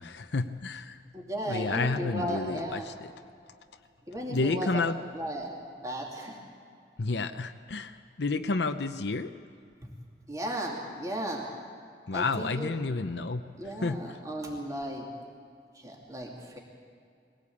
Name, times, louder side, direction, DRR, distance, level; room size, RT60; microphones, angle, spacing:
voice 1, 0.0-1.0 1.5-3.1 4.3-5.0 7.0-9.3 12.1-14.2, left 3 dB, 75° left, 7 dB, 0.7 m, -31 dB
voice 2, 1.1-2.9 4.1-4.8 5.1-5.5 5.8-6.4 10.3-11.5 12.1-12.7 13.6-15.0 15.7-16.6, right 1 dB, 20° right, -2 dB, 2.7 m, -35 dB
22.0 x 17.0 x 8.6 m, 2.4 s
head